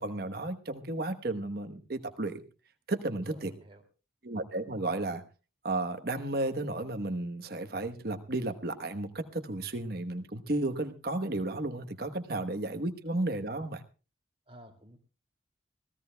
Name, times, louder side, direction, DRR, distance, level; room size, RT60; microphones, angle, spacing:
voice 1, 0.0-2.4 2.9-3.5 4.2-5.2 5.6-13.8, right 2 dB, 55° right, 8 dB, 1.1 m, -33 dB
voice 2, 3.3-3.8 12.5-12.6 14.5-15.0, equal, 30° right, 3 dB, 2.5 m, -52 dB
25.5 x 16.5 x 2.3 m, 0.33 s
head